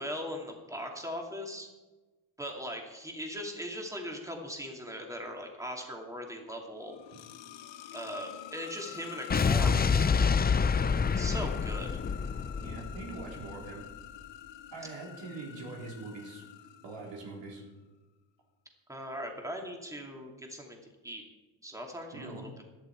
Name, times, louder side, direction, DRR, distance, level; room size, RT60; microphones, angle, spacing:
voice 1, 0.0-1.7 2.4-7.0 7.9-10.4 11.2-11.9 18.9-21.2 21.6-22.6, equal, 5° right, 1 dB, 2.7 m, -40 dB
sound 1, 6.7-17.5, left 11 dB, 80° left, 1.0 m, -47 dB
Explosion, 9.3-13.6, left 5 dB, 20° left, 0.5 m, -27 dB
voice 2, 12.6-13.8 14.7-16.4 16.8-17.6 22.1-22.4, right 3 dB, 80° right, -2 dB, 4.2 m, -43 dB
16.5 x 11.0 x 4.6 m, 1.2 s
cardioid pair, 105°, 44 cm